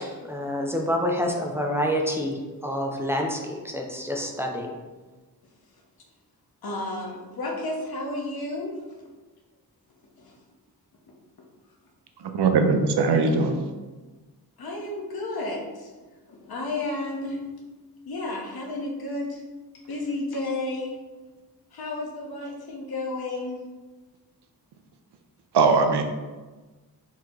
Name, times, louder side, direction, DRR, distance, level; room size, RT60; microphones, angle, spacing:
voice 1, 0.0-4.7, equal, 5° right, 0 dB, 0.5 m, -28 dB
voice 2, 6.6-8.7 10.2-10.4 14.6-15.9 16.3-17.4 18.1-19.4 19.9-21.0 21.7-23.6, left 2 dB, 65° left, -1 dB, 1.0 m, -32 dB
voice 3, 12.2-13.6 25.5-26.0, right 4 dB, 80° right, 5 dB, 0.6 m, -20 dB
4.7 x 2.9 x 3.7 m, 1.2 s
wide cardioid pair, 130°, 40 cm